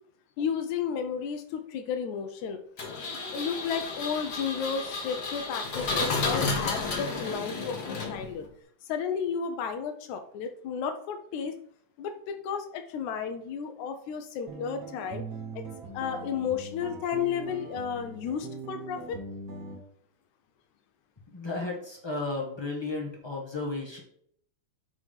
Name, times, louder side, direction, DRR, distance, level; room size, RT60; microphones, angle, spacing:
voice 1, 0.4-2.6 3.3-8.5 8.8-11.6 12.0-15.2 15.6-15.7 15.9-19.2, left 7 dB, 85° left, 7 dB, 2.1 m, -33 dB
Engine, 2.8-8.5, left 4 dB, 45° left, 1.4 m, -32 dB
sound 1, 14.5-19.8, right 4 dB, 60° right, 2.1 m, -41 dB
voice 2, 21.3-24.0, left 3 dB, 30° left, -2 dB, 0.5 m, -34 dB
7.9 x 3.7 x 5.6 m, 0.65 s
omnidirectional pair, 3.3 m